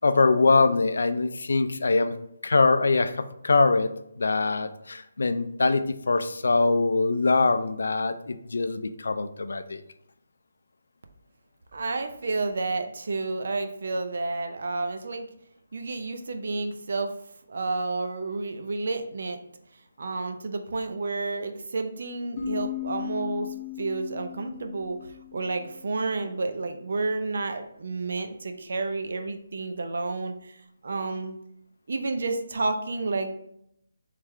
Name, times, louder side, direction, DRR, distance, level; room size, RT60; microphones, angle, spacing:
voice 1, 0.0-2.1 2.4-3.9 4.2-9.8, left 3 dB, 70° left, 10 dB, 0.4 m, -23 dB
voice 2, 11.7-15.3 15.7-17.1 17.5-19.4 19.7-23.5 23.8-31.4 31.9-33.4, right 3 dB, 55° right, 6 dB, 0.5 m, -30 dB
sound 1, 22.4-26.0, left 11 dB, 20° left, 0.8 m, -37 dB
3.5 x 3.2 x 3.3 m, 0.75 s
hypercardioid pair, 170°, 0 cm